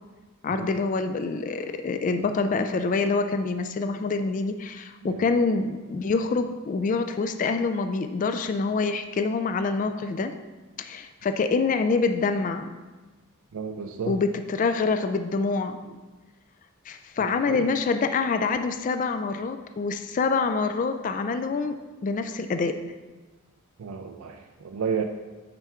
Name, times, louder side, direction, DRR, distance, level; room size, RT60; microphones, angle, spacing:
voice 1, 0.4-10.3 10.8-12.7 14.1-15.8 16.9-21.7 22.0-22.8, left 4 dB, 35° left, 8 dB, 0.3 m, -26 dB
voice 2, 13.5-14.2 15.8-15.9 17.2-17.7 23.8-25.0, right 6 dB, 85° right, 4 dB, 0.4 m, -32 dB
8.8 x 3.5 x 4.4 m, 1.2 s
head